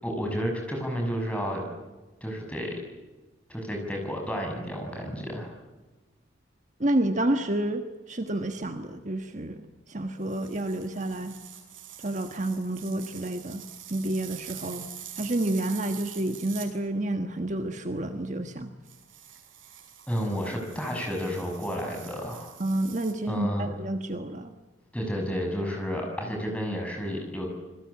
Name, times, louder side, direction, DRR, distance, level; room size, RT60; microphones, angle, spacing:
voice 1, 0.0-1.6 2.2-2.8 3.5-5.5 20.1-22.5 23.3-23.7 24.9-27.5, equal, 5° left, 1 dB, 6.7 m, -31 dB
voice 2, 6.8-11.4 12.0-13.6 13.9-14.9 15.2-18.7 22.6-24.5, right 1 dB, 40° right, 7 dB, 1.4 m, -29 dB
sound 1, 10.2-16.7 18.8-23.1, right 10 dB, 85° right, 6.5 m, -45 dB
28.0 x 21.5 x 8.6 m, 1.2 s
head